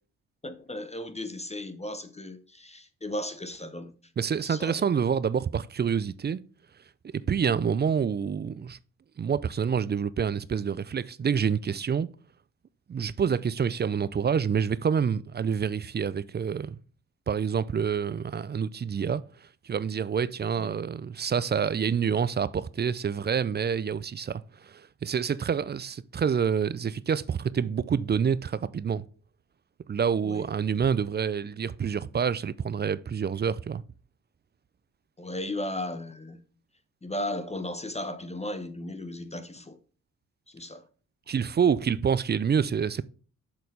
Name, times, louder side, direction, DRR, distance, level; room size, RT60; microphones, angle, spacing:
voice 1, 0.4-4.0 4.4-4.9 20.6-20.7 30.2-30.5 35.2-36.4 37.0-39.8 40.5-40.9, left 1 dB, 20° left, 0.8 m, -36 dB
voice 2, 4.2-6.4 7.1-8.8 9.2-12.1 12.9-16.8 17.3-19.2 19.6-29.0 29.9-33.8 41.3-43.1, right 7 dB, 30° right, 0.4 m, -27 dB
6.6 x 4.0 x 5.4 m
supercardioid pair, 50°, 35 cm